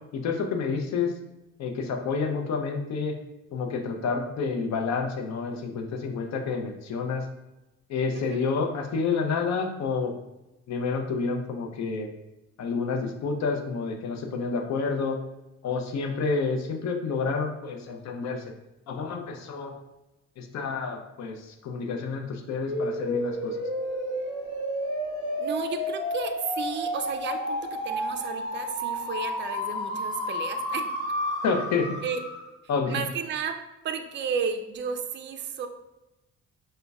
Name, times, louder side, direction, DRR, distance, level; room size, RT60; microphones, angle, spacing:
voice 1, 0.1-1.1 1.6-3.1 3.5-7.2 7.9-10.1 10.7-12.1 12.6-15.2 15.6-18.4 18.9-19.7 20.4-23.6 31.4-32.0 32.7-32.9, left 4 dB, 60° left, 4 dB, 0.6 m, -29 dB
sound 1, 22.7-32.5, left 1 dB, 80° left, 0.9 m, -31 dB
voice 2, 25.4-30.9 32.0-32.2 32.9-33.6 33.8-35.7, right 6 dB, 40° right, 6 dB, 0.4 m, -33 dB
5.1 x 2.1 x 2.3 m, 0.98 s
cardioid pair, 90°, 30 cm